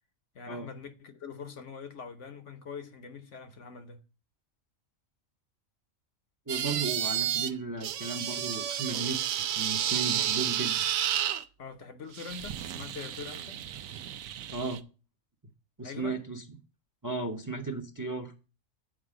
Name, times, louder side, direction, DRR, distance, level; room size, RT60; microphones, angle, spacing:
voice 1, 0.3-4.0 11.6-13.6 15.8-16.2, left 6 dB, 65° left, 1.2 m, -43 dB
voice 2, 6.5-10.9 14.5-14.8 15.8-16.4 17.0-18.3, right 3 dB, 20° right, 0.7 m, -35 dB
sound 1, 6.5-7.5 7.8-11.4 12.1-14.8, right 10 dB, 90° right, 1.0 m, -31 dB
7.6 x 4.7 x 6.2 m
omnidirectional pair, 1.4 m